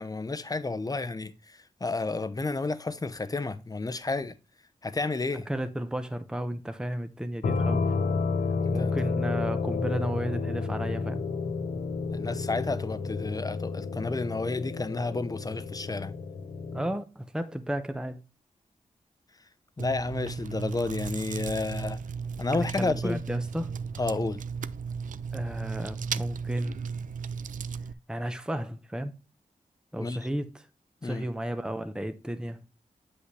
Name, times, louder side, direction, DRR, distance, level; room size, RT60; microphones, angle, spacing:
voice 1, 0.0-4.3 4.8-5.5 8.6-8.9 12.1-16.1 19.8-22.0 22.4-23.2 24.0-24.4 30.0-30.2 31.0-31.3, left 3 dB, 30° left, 0.8 m, -31 dB
voice 2, 5.3-8.0 8.7-11.3 16.7-18.2 22.5-23.7 25.3-26.9 28.1-29.1 29.9-30.7 31.0-32.6, right 1 dB, 5° right, 0.8 m, -33 dB
sound 1, 7.4-16.9, left 4 dB, 85° left, 0.8 m, -31 dB
Chewing mastication, 19.8-27.9, right 6 dB, 85° right, 0.4 m, -35 dB
8.1 x 5.8 x 3.2 m
cardioid pair, 70°, 13 cm